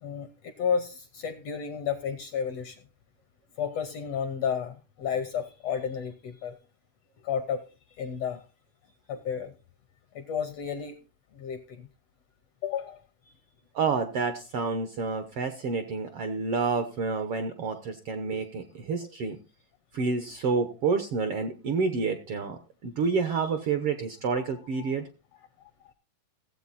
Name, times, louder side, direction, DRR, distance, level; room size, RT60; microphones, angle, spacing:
voice 1, 0.0-2.8 3.6-6.6 7.2-8.4 9.1-9.5 10.1-11.0 11.3-11.9 12.6-13.3 23.3-23.6 24.3-25.0 25.3-25.9, left 7 dB, 70° left, 9 dB, 1.6 m, -33 dB
voice 2, 13.7-19.4 19.9-25.1, right 4 dB, 65° right, 8 dB, 1.4 m, -29 dB
16.5 x 8.0 x 4.1 m, 0.31 s
omnidirectional pair, 3.7 m